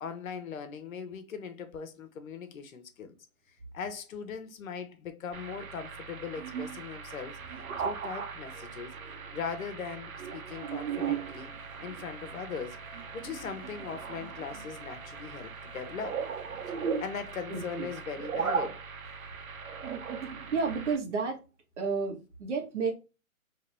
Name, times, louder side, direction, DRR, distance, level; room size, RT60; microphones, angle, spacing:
voice 1, 0.0-3.1 3.7-7.4 7.8-9.0 9.3-11.5 11.8-12.8 13.1-16.2 16.7-18.8, left 6 dB, 70° left, 0.8 m, -39 dB
sound 1, 5.3-21.0, right 6 dB, 75° right, 0.9 m, -38 dB
sound 2, 10.5-17.3, right 1 dB, 10° left, 1.6 m, -55 dB
voice 2, 17.5-17.9 20.5-21.4 21.8-22.9, right 5 dB, 55° right, 1.2 m, -31 dB
2.9 x 2.8 x 3.2 m
hypercardioid pair, 150°, 43 cm